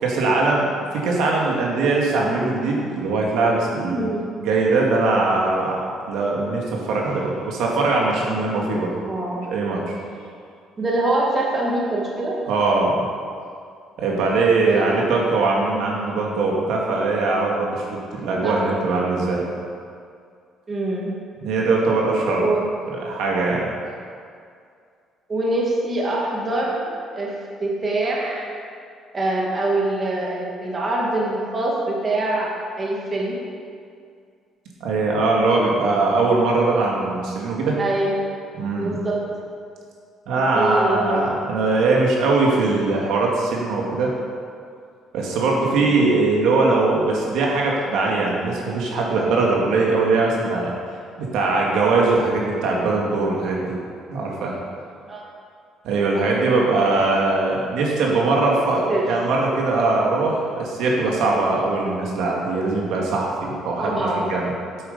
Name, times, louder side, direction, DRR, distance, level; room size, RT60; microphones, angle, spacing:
voice 1, 0.0-4.1 4.4-5.8 6.1-8.9 9.5-9.9 12.5-12.9 14.0-17.8 18.1-19.4 21.4-22.5 22.9-23.7 34.8-37.8 38.6-39.0 40.3-44.1 45.1-50.7 51.2-53.8 54.1-54.5 55.8-64.5, right 3 dB, 80° right, -2 dB, 2.1 m, -21 dB
voice 2, 3.9-4.2 9.0-9.5 10.8-12.4 14.7-15.1 18.4-18.6 20.7-21.1 22.4-22.7 25.3-27.3 27.6-28.5 29.1-33.4 37.8-38.2 38.8-39.2 40.4-41.2 45.8-46.0 55.1-55.2 58.9-59.1 63.8-64.2, right 2 dB, 25° right, -4 dB, 1.9 m, -24 dB
8.8 x 8.4 x 5.5 m, 2.3 s
cardioid pair, 145°, 0 cm